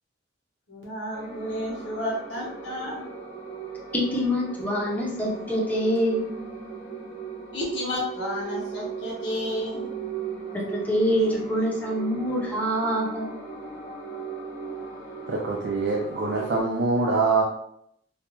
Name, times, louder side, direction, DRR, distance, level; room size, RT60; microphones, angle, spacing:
voice 1, 0.7-3.0 7.5-9.9, left 1 dB, 70° left, -5 dB, 0.9 m, -31 dB
sound 1, 1.1-16.6, right 5 dB, 50° left, 0.7 m, -37 dB
voice 2, 3.9-6.3 10.5-13.3, equal, 10° left, -4 dB, 0.6 m, -25 dB
voice 3, 15.3-17.4, right 3 dB, 60° right, -1 dB, 0.4 m, -24 dB
2.3 x 2.2 x 2.9 m, 0.72 s
head